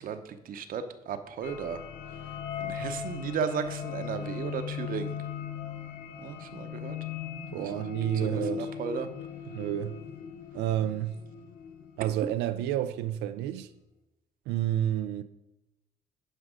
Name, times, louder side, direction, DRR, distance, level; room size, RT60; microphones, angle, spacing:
voice 1, 0.0-1.8 2.6-5.2 6.2-7.0 7.5-7.8 8.1-9.1 12.0-12.1, right 7 dB, 55° right, 0.8 m, -35 dB
sound 1, 1.4-12.7, left 8 dB, 90° left, 0.8 m, -38 dB
voice 2, 7.5-8.7 9.5-10.0 10.5-11.2 12.0-13.7 14.5-15.2, right 12 dB, 85° right, 0.4 m, -30 dB
9.9 x 5.2 x 5.1 m
cardioid pair, 110°, 17 cm